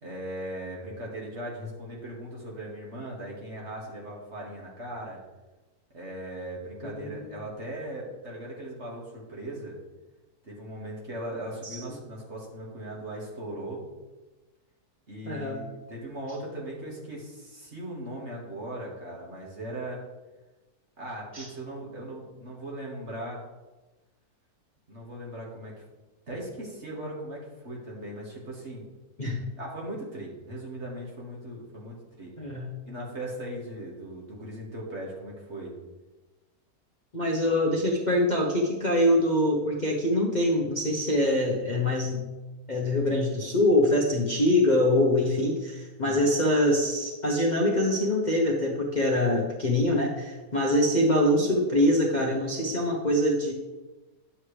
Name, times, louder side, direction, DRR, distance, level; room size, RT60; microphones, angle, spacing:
voice 1, 0.0-5.2 5.9-9.8 10.4-13.8 15.1-20.0 21.0-23.4 24.9-25.8 26.3-28.9 29.6-32.3 32.9-35.7 46.0-46.3, right 1 dB, 45° right, -3 dB, 2.2 m, -38 dB
voice 2, 6.8-7.1 11.6-11.8 15.3-15.6 21.3-21.5 29.2-29.4 32.4-32.7 37.1-42.2 42.7-53.5, left 1 dB, 35° left, -3 dB, 1.0 m, -24 dB
10.0 x 7.3 x 3.3 m, 1.1 s
omnidirectional pair, 1.6 m